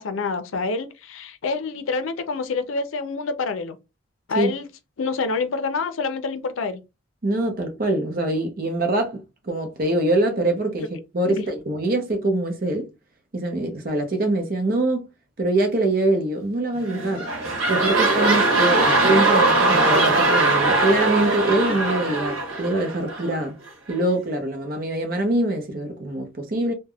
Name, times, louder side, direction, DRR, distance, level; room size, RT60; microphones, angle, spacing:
voice 1, 0.0-3.8 4.3-4.7 5.0-6.8, left 4 dB, 80° left, 0.5 m, -27 dB
voice 2, 7.2-12.9 13.3-15.1 15.4-17.3 17.7-23.5 23.9-26.7, right 2 dB, 45° right, 0.6 m, -24 dB
sound 1, 16.8-23.4 23.9-24.0, right 2 dB, 85° right, 1.0 m, -20 dB
3.3 x 2.1 x 2.2 m
head